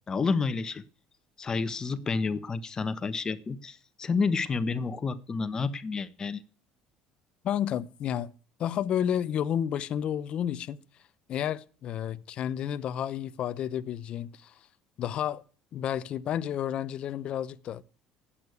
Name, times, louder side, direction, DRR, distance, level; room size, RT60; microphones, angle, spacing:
voice 1, 0.1-0.8 1.4-6.4, left 4 dB, 30° left, 1.3 m, -30 dB
voice 2, 7.4-8.3 8.6-10.8 11.3-14.5 15.0-15.4 15.7-17.8, left 10 dB, 55° left, 0.8 m, -31 dB
12.0 x 8.7 x 8.3 m
supercardioid pair, 85°, 2 cm